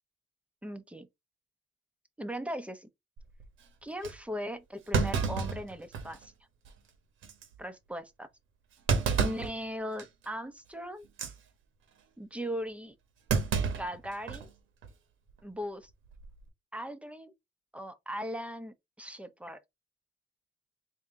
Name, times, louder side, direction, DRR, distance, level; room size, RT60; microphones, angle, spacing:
voice 1, 0.6-1.1 2.2-2.9 3.8-6.3 7.6-8.3 9.2-11.1 12.2-12.9 13.6-14.5 15.4-15.9 16.7-17.3 17.7-19.6, equal, 5° right, 0.7 m, -38 dB
Thump thud, 3.2-3.5 4.0-4.1 4.9-6.3 6.7-6.8 7.2-7.5 8.9-9.5 10.0-10.3 11.0-11.3 13.3-14.5 14.8-14.9 16.1-16.4, right 5 dB, 85° right, 1.1 m, -30 dB
3.9 x 2.7 x 3.5 m
cardioid pair, 90°, 20 cm